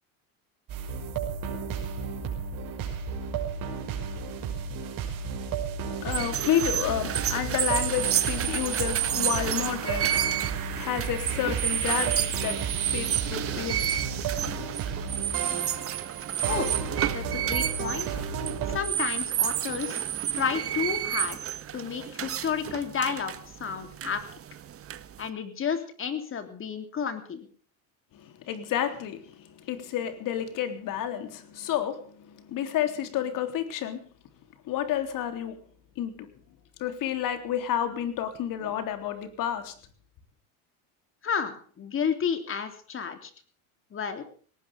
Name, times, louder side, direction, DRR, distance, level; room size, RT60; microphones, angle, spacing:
sound 1, 0.7-18.8, right 6 dB, 50° right, 6.1 m, -33 dB
voice 1, 6.0-10.4 10.7-12.6 12.9-13.9 28.1-34.0 34.6-35.6 36.0-36.3 36.8-39.8, left 10 dB, 50° left, 3.5 m, -30 dB
sound 2, 6.0-25.3, right 10 dB, 30° right, 1.4 m, -30 dB
voice 2, 17.1-18.1 18.7-20.0 20.3-21.4 21.7-23.3 23.6-24.2 25.2-27.5 41.2-43.3 43.9-44.2, left 6 dB, 30° left, 3.4 m, -31 dB
19.5 x 18.5 x 3.6 m
supercardioid pair, 130°, 42 cm